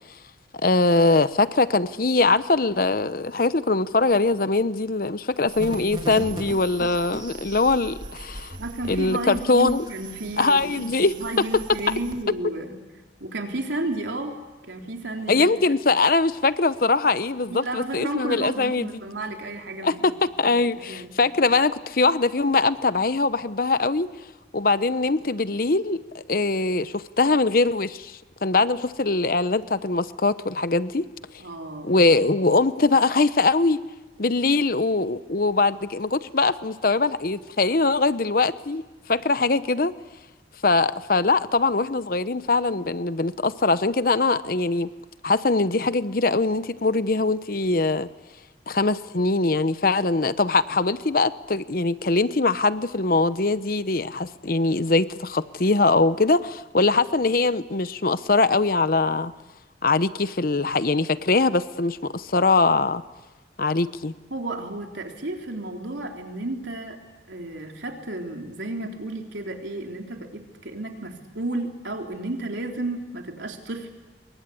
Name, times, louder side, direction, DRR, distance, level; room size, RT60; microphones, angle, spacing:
voice 1, 0.6-8.6 8.9-9.9 10.4-11.4 15.3-18.9 19.8-24.1 24.5-31.1 31.8-33.8 34.2-38.8 39.1-39.9 40.6-44.9 45.2-48.1 48.7-59.3 59.8-63.0 63.6-64.1, left 3 dB, 50° left, 14 dB, 0.9 m, -22 dB
sound 1, 5.5-12.2, right 1 dB, 25° right, 2.4 m, -38 dB
voice 2, 8.6-12.8 13.2-14.4 14.7-15.5 17.5-20.1 20.5-21.1 31.4-32.0 64.3-67.0 67.3-73.9, right 2 dB, 90° right, 2 dB, 3.7 m, -32 dB
27.0 x 23.0 x 8.5 m, 1.2 s
head